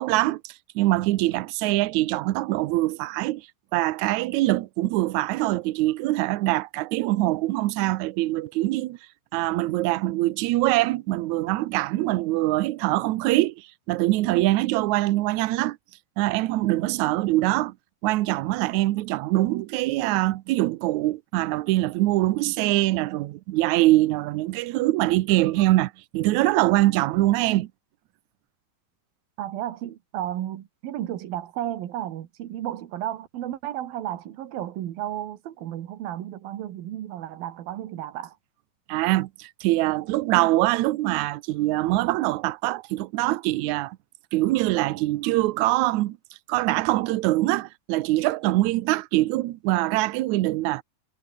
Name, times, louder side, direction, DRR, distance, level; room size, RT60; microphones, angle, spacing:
voice 1, 0.0-3.5 3.7-9.0 9.3-15.8 16.2-17.7 18.0-27.7 38.9-44.0 44.3-46.2 46.5-50.8, right 17 dB, 75° right, 1.8 m, -23 dB
voice 2, 29.4-38.4, right 12 dB, 90° right, 3.4 m, -33 dB
omnidirectional pair, 4.1 m